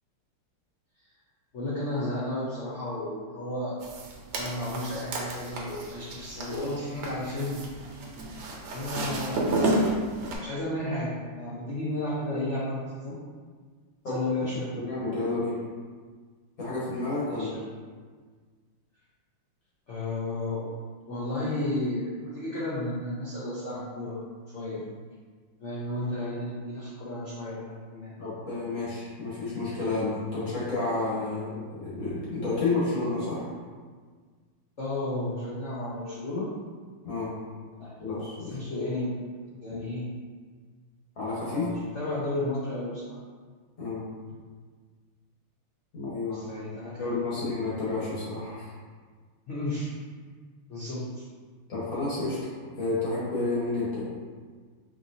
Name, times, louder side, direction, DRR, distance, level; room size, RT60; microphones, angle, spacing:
voice 1, 1.5-3.8 4.3-7.6 8.7-10.1 10.4-13.2 14.0-14.7 17.3-17.6 19.9-20.6 21.1-24.2 24.5-24.8 25.6-28.1 34.8-36.5 37.8-37.9 38.5-39.1 39.6-40.0 41.5-43.2 46.3-47.1 47.4-47.5 49.5-49.9 50.7-51.2, left 1 dB, 90° left, -8 dB, 0.6 m, -33 dB
sound 1, 3.8-10.4, right 1 dB, 75° right, 1.4 m, -31 dB
voice 2, 14.0-14.5 14.8-15.6 16.6-17.5 28.2-33.5 37.0-37.3 38.0-38.6 41.2-41.7 43.8-44.1 45.9-46.5 47.0-48.7 51.7-54.0, left 3 dB, 45° left, -8 dB, 1.6 m, -30 dB
5.0 x 3.1 x 2.7 m, 1.5 s
omnidirectional pair, 2.3 m